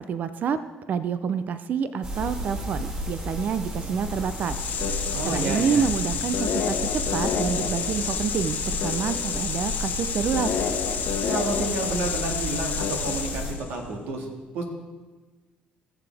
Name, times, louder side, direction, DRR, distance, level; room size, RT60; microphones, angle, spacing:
voice 1, 0.1-0.6 0.9-4.6 5.2-10.5, right 7 dB, 50° right, 12 dB, 0.5 m, -27 dB
sound 1, 2.0-13.5, equal, 35° right, 3.1 m, -34 dB
sound 2, 4.1-13.7, left 7 dB, 60° left, 1.2 m, -29 dB
voice 2, 5.1-5.9 11.3-14.3 14.5-14.6, right 2 dB, 80° right, 1 dB, 2.0 m, -30 dB
17.0 x 7.0 x 3.5 m, 1.3 s
supercardioid pair, 85°, 4 cm